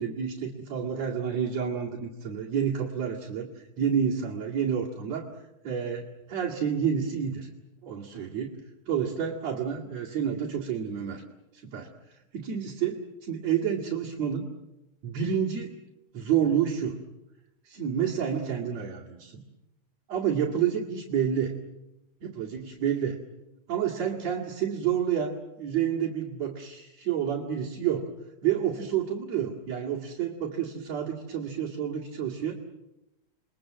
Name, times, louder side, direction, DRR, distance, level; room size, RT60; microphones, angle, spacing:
voice 1, 0.0-5.3 5.6-7.5 7.8-8.6 8.9-11.2 11.5-14.5 15.0-15.8 16.1-17.0 17.7-19.4 20.1-21.6 22.2-23.2 23.7-28.1 28.4-32.5, right 8 dB, 60° right, -2 dB, 3.5 m, -29 dB
29.5 x 22.0 x 7.7 m, 0.95 s
omnidirectional pair, 3.4 m